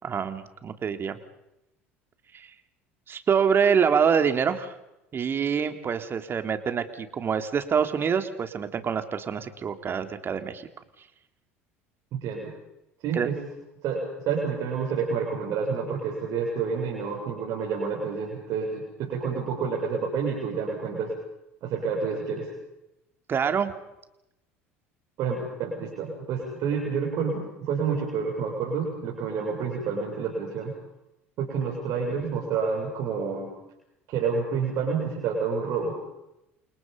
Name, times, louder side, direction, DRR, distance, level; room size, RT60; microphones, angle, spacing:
voice 1, 0.0-1.2 2.3-2.5 3.1-4.7 5.1-10.7 13.1-13.3 23.3-23.7, right 7 dB, 30° right, 8 dB, 3.2 m, -26 dB
voice 2, 12.1-12.5 13.0-13.4 13.8-21.1 21.6-22.5 25.2-30.7 31.4-33.5 34.1-36.0, right 5 dB, 50° right, -3 dB, 7.6 m, -29 dB
29.0 x 28.0 x 5.5 m, 0.87 s
figure-of-eight pair, 65°, 7 cm